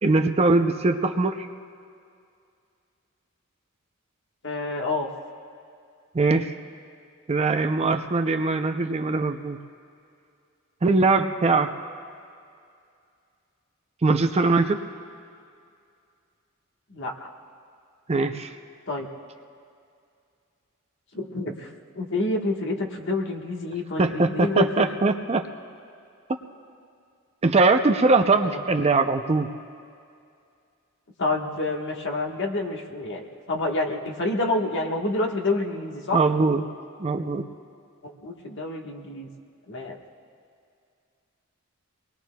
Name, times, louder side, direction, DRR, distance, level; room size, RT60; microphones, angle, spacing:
voice 1, 0.0-1.5 6.1-6.6 7.3-9.6 10.8-11.8 14.0-14.8 18.1-18.5 24.0-25.5 27.4-29.5 36.1-36.6 37.0-37.5, right 3 dB, 30° right, 6 dB, 0.5 m, -21 dB
voice 2, 4.4-5.1 16.9-17.3 18.9-19.1 21.1-21.7 21.9-24.9 28.4-28.6 31.2-36.3 38.0-39.3 39.7-40.0, left 2 dB, 60° left, 1 dB, 1.3 m, -28 dB
25.5 x 20.5 x 2.3 m, 2.4 s
head